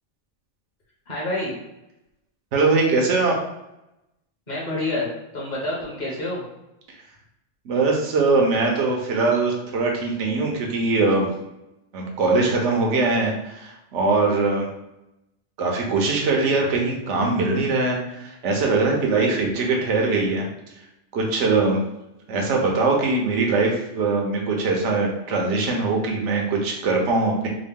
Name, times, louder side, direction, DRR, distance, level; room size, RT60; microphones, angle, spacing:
voice 1, 1.1-1.5 4.5-6.5, left 2 dB, 40° left, -5 dB, 1.3 m, -28 dB
voice 2, 2.5-3.3 7.6-11.3 11.9-14.7 15.6-20.5 21.1-21.8 22.3-27.5, right 3 dB, 80° right, 0 dB, 1.1 m, -21 dB
3.8 x 2.1 x 3.6 m, 0.91 s
omnidirectional pair, 1.2 m